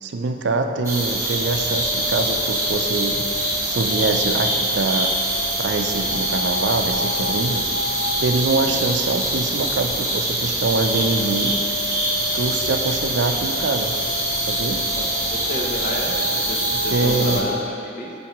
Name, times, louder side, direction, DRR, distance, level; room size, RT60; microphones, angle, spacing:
voice 1, 0.0-5.1 5.6-7.6 8.2-11.5 12.3-13.9 14.5-14.8 16.7-17.5, right 3 dB, 70° right, 5 dB, 0.5 m, -24 dB
sound 1, 0.8-17.4, right 1 dB, 15° right, 1.1 m, -24 dB
sound 2, 1.0-8.3 10.3-17.6, left 2 dB, 75° left, 1.0 m, -33 dB
voice 2, 14.9-18.1, equal, 45° left, -1 dB, 0.8 m, -30 dB
10.5 x 4.4 x 3.1 m, 2.7 s
head